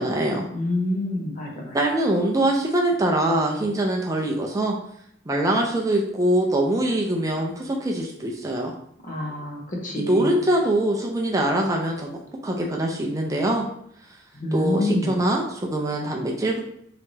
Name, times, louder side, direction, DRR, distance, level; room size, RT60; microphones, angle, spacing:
voice 1, 0.0-0.5 1.7-4.8 5.3-8.7 10.0-12.1 12.4-13.7 14.5-16.6, right 1 dB, 15° right, 0 dB, 0.4 m, -23 dB
voice 2, 0.5-1.8 9.0-10.3 14.3-15.2, left 1 dB, 40° left, -1 dB, 1.0 m, -27 dB
3.9 x 3.3 x 3.2 m, 0.70 s
head